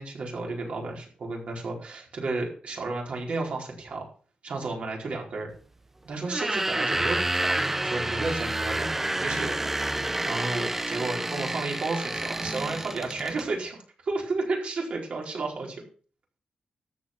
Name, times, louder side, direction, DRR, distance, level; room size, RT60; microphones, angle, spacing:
voice 1, 0.0-4.1 4.4-5.5 6.0-15.8, right 3 dB, 60° right, 0 dB, 4.6 m, -32 dB
sound 1, 6.2-13.5, right 2 dB, 10° right, 0.6 m, -29 dB
13.5 x 8.0 x 6.2 m, 0.42 s
wide cardioid pair, 165°, 2 cm